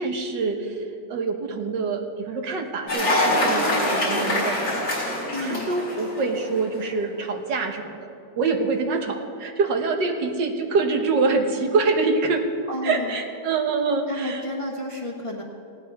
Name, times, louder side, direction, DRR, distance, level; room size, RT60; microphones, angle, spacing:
voice 1, 0.0-4.8 5.4-8.1 8.4-12.5 12.8-14.4, right 4 dB, 75° right, 4 dB, 1.8 m, -25 dB
Cheering / Applause, 2.9-6.6, left 1 dB, 85° left, 5.1 m, -24 dB
voice 2, 5.3-5.7 12.7-13.2 14.1-15.4, left 1 dB, 20° left, -1 dB, 1.2 m, -31 dB
17.5 x 17.0 x 3.5 m, 2.5 s
omnidirectional pair, 2.0 m